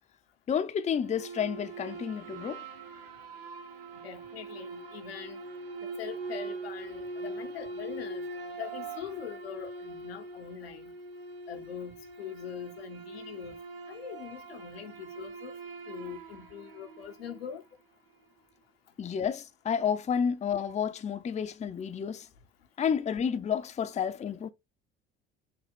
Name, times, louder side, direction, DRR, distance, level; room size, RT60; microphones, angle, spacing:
voice 1, 0.5-2.6 19.0-22.3 22.8-24.5, left 7 dB, 25° left, 0.5 m, -30 dB
sound 1, 1.0-17.6, right 3 dB, 80° right, 1.0 m, -42 dB
voice 2, 4.0-5.4 5.8-8.2 8.6-10.9 11.5-13.6 13.9-15.5 15.9-17.6, left 8 dB, 85° left, 0.8 m, -42 dB
6.6 x 2.2 x 3.5 m
hypercardioid pair, 60°, 29 cm